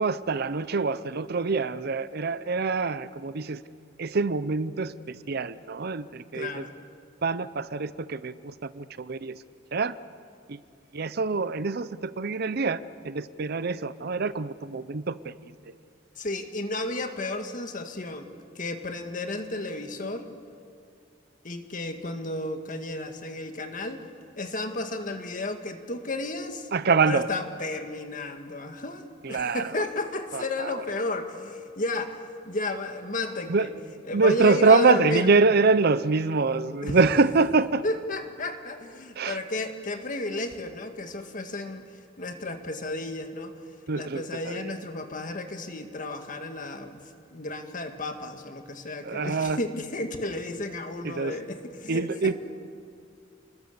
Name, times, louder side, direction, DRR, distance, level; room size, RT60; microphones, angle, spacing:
voice 1, 0.0-3.6 4.0-6.7 7.2-9.4 9.7-10.0 10.5-10.6 10.9-15.7 26.7-27.3 29.2-29.8 30.3-30.8 33.5-33.7 34.1-37.8 39.2-39.4 43.9-44.7 49.0-49.6 51.0-51.4 51.9-52.3, right 4 dB, 55° right, 15 dB, 0.6 m, -25 dB
voice 2, 6.3-6.7 16.2-18.3 18.6-20.3 21.4-24.0 24.4-26.7 27.0-32.2 32.5-33.7 34.1-35.3 36.8-37.0 37.8-41.8 42.2-43.5 43.9-47.0 47.3-52.3, left 2 dB, 45° left, 6 dB, 1.9 m, -33 dB
30.0 x 21.0 x 6.8 m, 2.3 s
head